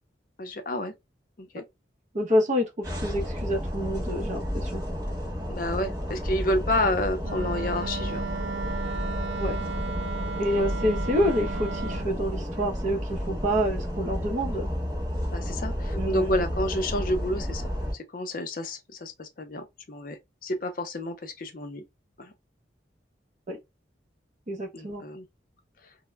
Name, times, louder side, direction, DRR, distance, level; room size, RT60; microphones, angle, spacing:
voice 1, 0.4-0.9 1.4-1.6 5.5-8.3 15.3-21.8 22.2-22.3 24.7-25.2, left 1 dB, 50° left, 0.5 m, -30 dB
voice 2, 2.1-4.8 9.3-9.6 10.4-14.7 15.9-16.3 23.5-23.6 24.5-25.0, equal, 40° right, 0.6 m, -27 dB
sound 1, 2.8-17.9, equal, 20° right, 1.0 m, -31 dB
Wind instrument woodwind instrument, 7.2-12.1, right 4 dB, 85° right, 0.3 m, -35 dB
2.1 x 2.0 x 3.2 m
head